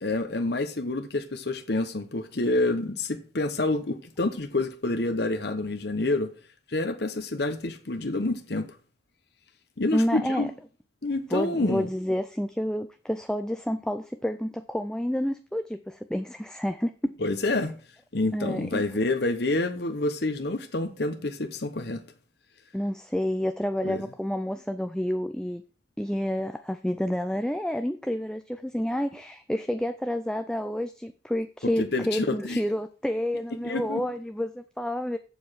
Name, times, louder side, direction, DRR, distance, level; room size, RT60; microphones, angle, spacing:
voice 1, 0.0-6.3 6.7-8.7 9.8-10.5 11.0-11.9 17.2-17.8 18.1-22.0 23.8-24.0 31.8-32.6 33.6-34.0, left 2 dB, 55° left, 1.0 m, -28 dB
voice 2, 9.9-10.5 11.3-17.2 18.3-18.8 22.7-25.6 26.0-35.2, equal, 5° left, 0.4 m, -29 dB
7.7 x 7.0 x 6.3 m
head